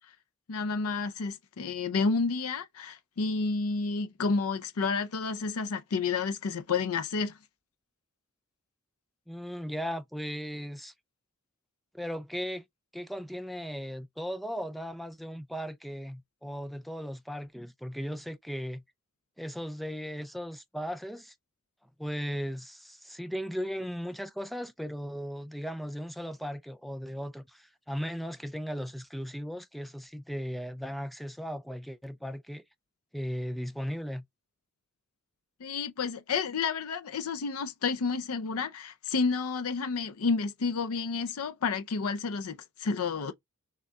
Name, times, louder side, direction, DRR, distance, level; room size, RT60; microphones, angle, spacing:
voice 1, 0.5-7.4 35.6-43.3, left 4 dB, 80° left, 0.5 m, -30 dB
voice 2, 9.3-10.9 11.9-12.6 12.9-18.8 19.4-21.3 22.0-32.6 33.1-34.2, equal, ahead, 0.4 m, -37 dB
6.5 x 2.3 x 3.5 m
head